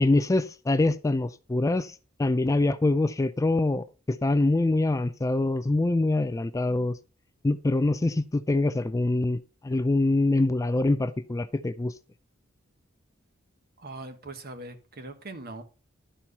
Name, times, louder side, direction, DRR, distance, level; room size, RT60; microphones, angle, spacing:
voice 1, 0.0-7.0 7.4-11.9, left 2 dB, 15° left, 0.3 m, -25 dB
voice 2, 13.8-15.6, right 2 dB, 50° right, 1.3 m, -41 dB
11.5 x 4.5 x 5.4 m
head